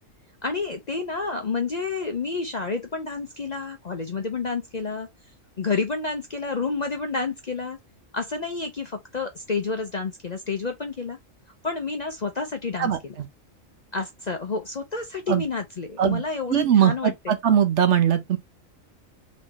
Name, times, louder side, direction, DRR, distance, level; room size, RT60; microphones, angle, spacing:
voice 1, 0.4-5.1 5.6-7.8 8.1-11.2 11.6-13.2 13.9-17.4, left 4 dB, 45° left, 0.6 m, -29 dB
voice 2, 12.8-13.3 15.3-15.4 16.0-16.2 16.5-18.4, right 9 dB, 65° right, 1.0 m, -21 dB
3.9 x 3.7 x 3.0 m
omnidirectional pair, 1.4 m